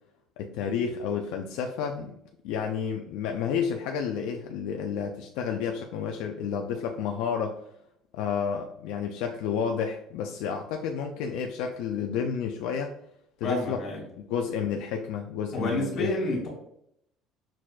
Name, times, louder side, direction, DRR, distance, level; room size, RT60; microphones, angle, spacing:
voice 1, 0.4-2.1 2.4-7.6 8.1-12.9 13.4-13.8 14.1-16.1, left 7 dB, 75° left, 3 dB, 0.3 m, -30 dB
voice 2, 13.4-14.0 15.5-16.5, left 1 dB, 45° left, -1 dB, 1.3 m, -29 dB
5.9 x 2.2 x 2.3 m, 0.74 s
cardioid pair, 175°, 0 cm